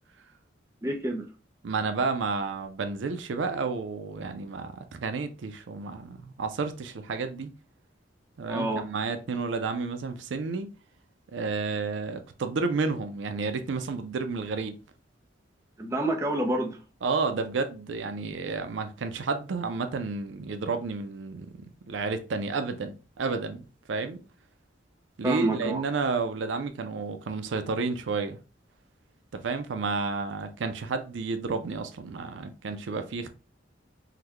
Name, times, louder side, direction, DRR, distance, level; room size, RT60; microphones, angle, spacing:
voice 1, 0.8-1.3 8.5-8.8 15.8-16.8 25.2-25.8, right 1 dB, 15° right, 0.6 m, -28 dB
voice 2, 1.6-7.5 8.4-10.7 11.3-14.8 17.0-21.5 21.9-24.2 25.2-28.4 29.3-33.3, right 4 dB, 85° right, 0.4 m, -31 dB
3.8 x 2.2 x 3.0 m
head